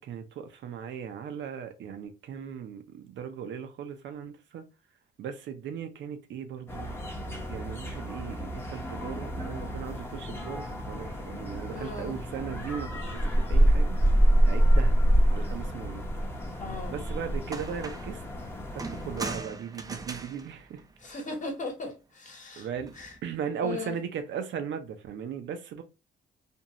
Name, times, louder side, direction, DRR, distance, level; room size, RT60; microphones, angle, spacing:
voice 1, 0.0-4.6 5.2-7.0 7.5-14.0 14.4-14.9 15.3-16.0 16.9-18.2 18.9-20.8 22.6-22.9 23.2-25.8, right 7 dB, 70° right, 0.6 m, -37 dB
sound 1, 6.7-19.4, equal, 10° left, 0.7 m, -27 dB
voice 2, 11.7-12.2 16.6-17.0 21.0-22.7 22.9-23.2 23.6-24.0, left 3 dB, 40° left, 1.1 m, -38 dB
sound 2, 17.0-17.1 17.5-18.2 18.8-21.5 22.8-23.2, right 3 dB, 20° right, 0.4 m, -40 dB
2.6 x 2.2 x 2.8 m
cardioid pair, 90°, 20 cm